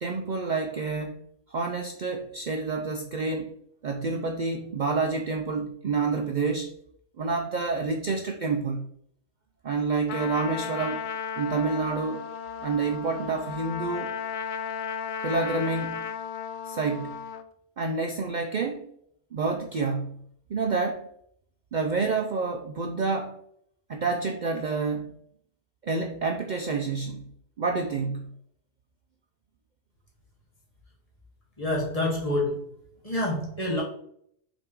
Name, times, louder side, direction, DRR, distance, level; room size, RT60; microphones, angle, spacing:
voice 1, 0.0-1.2 1.5-3.5 3.8-6.7 7.2-8.9 9.6-11.0 11.4-12.2 12.6-14.1 15.2-16.0 16.6-17.1 17.8-18.9 19.3-20.2 20.5-21.1 21.7-23.4 23.9-25.1 25.8-27.3 27.6-28.4, right 4 dB, 50° right, 4 dB, 0.6 m, -28 dB
Trumpet, 10.1-17.4, left 7 dB, 55° left, 0.6 m, -35 dB
voice 2, 31.6-32.8 33.0-33.8, left 1 dB, 30° left, -3 dB, 2.0 m, -27 dB
6.4 x 3.5 x 4.6 m, 0.68 s
omnidirectional pair, 1.2 m